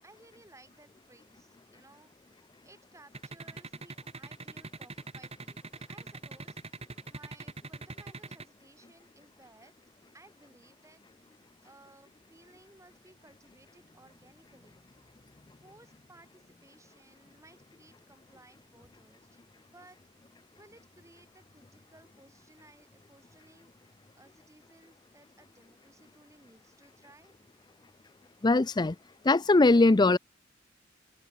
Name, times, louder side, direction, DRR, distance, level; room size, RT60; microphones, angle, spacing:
voice 1, 0.0-9.7 10.1-14.8 15.6-19.4 19.7-20.0 20.5-27.4, right 2 dB, 15° right, 7.0 m, -59 dB
sound 1, 3.1-8.4, right 3 dB, 30° right, 2.4 m, -42 dB
voice 2, 28.4-29.0 29.2-30.2, left 2 dB, 20° left, 0.5 m, -21 dB
head